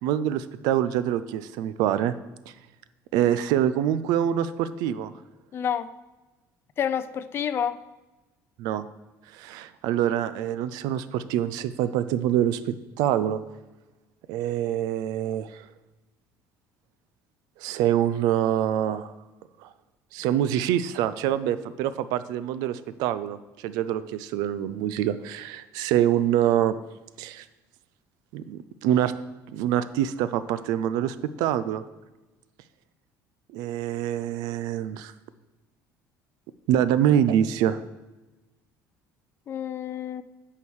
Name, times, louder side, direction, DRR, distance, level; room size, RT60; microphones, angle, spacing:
voice 1, 0.0-2.1 3.1-5.1 8.6-8.8 9.3-13.4 14.3-15.6 17.6-19.1 19.6-19.7 20.1-23.4 23.6-26.8 27.2-27.4 28.3-29.1 29.5-31.8 33.5-35.1 36.7-37.8, right 11 dB, 75° right, 14 dB, 0.5 m, -25 dB
voice 2, 5.5-5.9 6.8-7.8 39.5-40.2, left 8 dB, 35° left, 14 dB, 0.4 m, -28 dB
8.6 x 4.7 x 6.2 m, 1.1 s
cardioid pair, 140°, 7 cm